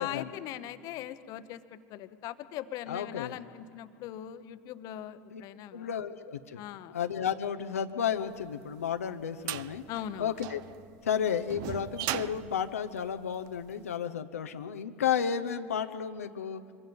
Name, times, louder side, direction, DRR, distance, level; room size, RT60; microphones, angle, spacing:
voice 1, 0.0-5.9 6.6-6.9 9.9-10.3, left 12 dB, 55° left, 12 dB, 1.0 m, -40 dB
voice 2, 2.9-3.3 5.3-5.4 5.7-6.6 6.9-9.8 10.2-10.6 11.0-16.6, left 8 dB, 90° left, 7 dB, 0.8 m, -32 dB
sound 1, 8.4-13.7, right 15 dB, 55° right, 0.6 m, -39 dB
24.5 x 22.5 x 5.4 m, 2.4 s
hypercardioid pair, 85°, 7 cm